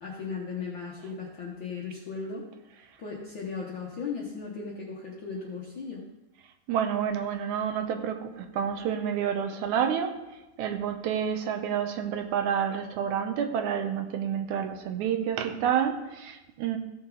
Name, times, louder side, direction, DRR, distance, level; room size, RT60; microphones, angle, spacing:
voice 1, 0.0-2.4 3.0-6.0, left 5 dB, 60° left, -2 dB, 1.2 m, -36 dB
voice 2, 6.7-10.2 10.6-16.8, right 8 dB, 80° right, 6 dB, 2.1 m, -29 dB
15.0 x 6.5 x 3.8 m, 1.0 s
omnidirectional pair, 3.6 m